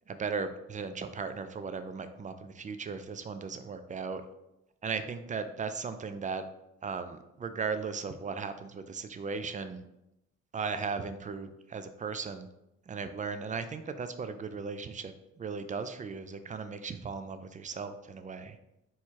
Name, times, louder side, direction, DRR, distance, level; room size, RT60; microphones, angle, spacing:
voice 1, 0.1-4.2 4.8-6.4 6.8-9.8 10.5-12.5 12.9-18.6, right 5 dB, 25° right, 10 dB, 0.3 m, -37 dB
4.3 x 2.3 x 4.5 m, 0.88 s
cardioid pair, 90°, 30 cm